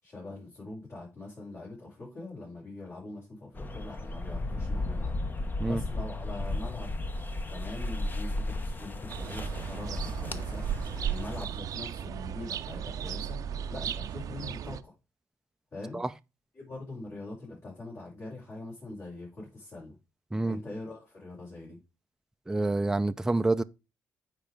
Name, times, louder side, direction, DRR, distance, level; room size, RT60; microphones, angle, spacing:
voice 1, 0.0-6.9 7.5-10.7 11.0-13.4 13.7-14.9 15.7-16.0 16.5-20.0 20.4-21.8, left 2 dB, 50° left, 6.0 m, -43 dB
sound 1, 3.5-11.4, left 2 dB, 30° left, 1.0 m, -35 dB
sound 2, 9.1-14.8, right 9 dB, 65° right, 0.5 m, -35 dB
voice 2, 22.5-23.6, right 2 dB, 10° right, 0.4 m, -27 dB
9.1 x 4.6 x 5.1 m
cardioid pair, 80°, 6 cm